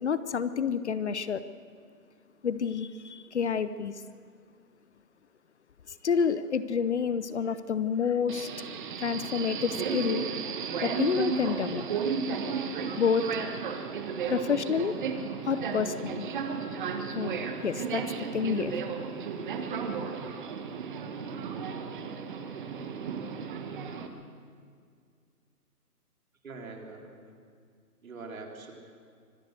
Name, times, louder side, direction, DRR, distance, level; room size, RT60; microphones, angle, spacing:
voice 1, 0.0-1.4 2.4-4.0 5.9-8.5 9.0-10.2 10.8-11.8 13.0-13.3 14.3-15.0 15.4-16.3 17.1-18.0 18.3-18.8, left 6 dB, 45° left, 14 dB, 0.8 m, -29 dB
Subway metro underground, 8.3-24.1, right 6 dB, 30° right, 1.4 m, -34 dB
voice 2, 26.4-27.4 28.0-28.7, right 3 dB, 60° right, 1 dB, 4.0 m, -43 dB
24.5 x 17.0 x 6.6 m, 2.1 s
hypercardioid pair, 150°, 47 cm